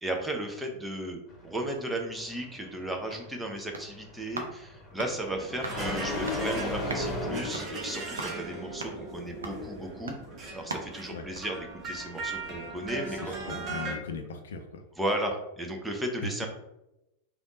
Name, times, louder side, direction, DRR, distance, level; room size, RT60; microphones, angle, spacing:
voice 1, 0.0-13.7 15.0-16.5, right 1 dB, 5° right, 2 dB, 0.6 m, -35 dB
sound 1, 1.3-7.7, left 1 dB, 25° left, 1.2 m, -37 dB
sound 2, 2.8-12.3 12.6-12.7, right 3 dB, 70° right, 0.5 m, -43 dB
sound 3, 5.3-14.0, right 1 dB, 30° right, 0.8 m, -38 dB
voice 2, 13.1-14.8, left 5 dB, 60° left, 6 dB, 0.5 m, -39 dB
3.5 x 2.5 x 3.8 m, 0.91 s
figure-of-eight pair, 90°, 0 cm